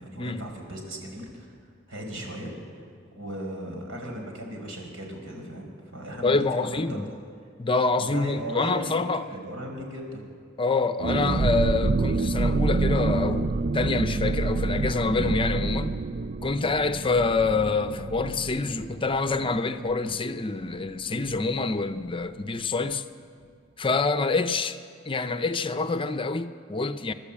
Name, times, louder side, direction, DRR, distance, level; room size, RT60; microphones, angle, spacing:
voice 1, 0.0-1.5 1.9-2.5 3.1-7.0 7.9-9.0 9.3-10.2, right 1 dB, 75° right, 5.1 m, -37 dB
voice 2, 6.2-7.0 7.6-9.3 10.6-15.9 16.4-23.0 23.8-24.8 25.1-27.1, left 3 dB, 25° left, 0.6 m, -26 dB
sound 1, 11.0-20.4 20.7-20.8 21.1-21.4, right 3 dB, 45° right, 0.4 m, -27 dB
28.5 x 12.5 x 8.6 m
head